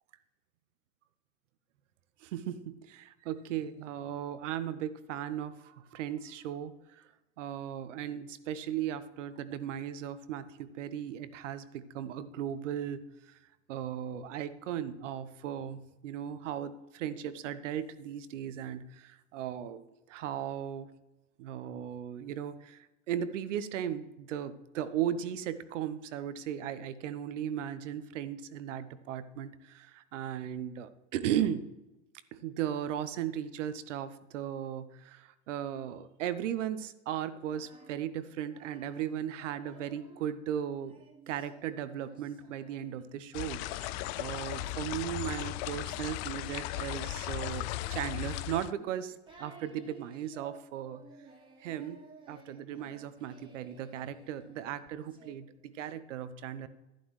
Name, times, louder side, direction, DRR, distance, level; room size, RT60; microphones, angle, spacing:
voice 1, 2.2-6.7 7.4-13.4 13.7-19.8 20.1-20.9 21.4-22.8 23.1-31.7 32.3-41.0 41.3-51.0 51.6-52.0 52.3-56.7, right 10 dB, 75° right, 13 dB, 0.9 m, -37 dB
Singing, 37.3-40.3 40.9-55.3, right 4 dB, 15° right, 1.9 m, -57 dB
sound 1, 43.3-48.7, left 15 dB, 55° left, 0.5 m, -36 dB
11.5 x 11.0 x 3.2 m, 0.99 s
hypercardioid pair, 95°, 37 cm